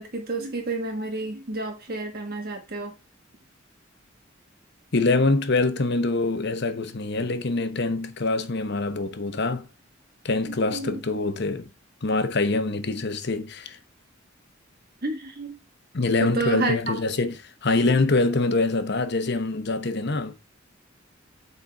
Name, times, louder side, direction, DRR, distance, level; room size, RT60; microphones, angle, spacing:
voice 1, 0.0-2.9 10.7-11.0 15.0-15.6 16.2-16.8, right 3 dB, 50° right, 1.4 m, -30 dB
voice 2, 4.9-9.7 10.2-11.7 12.0-13.8 15.9-20.3, left 3 dB, 60° left, 1.0 m, -24 dB
7.9 x 4.2 x 4.6 m
head